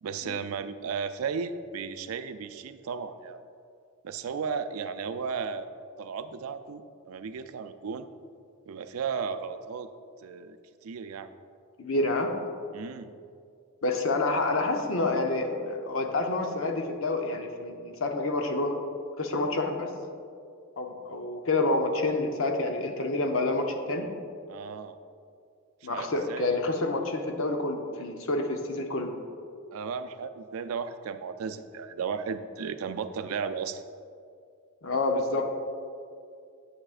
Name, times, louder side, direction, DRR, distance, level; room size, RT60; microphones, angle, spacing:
voice 1, 0.0-3.4 4.0-5.7 6.0-8.1 8.7-9.9 10.2-10.6 10.8-11.3 12.7-13.1 24.5-25.0 25.8-26.6 29.7-33.8, right 6 dB, 80° right, 10 dB, 0.4 m, -35 dB
voice 2, 11.8-12.4 13.8-18.8 19.2-19.9 20.8-24.1 25.8-29.1 34.8-35.5, left 2 dB, 65° left, 4 dB, 0.7 m, -28 dB
8.6 x 7.9 x 2.4 m, 2.3 s
head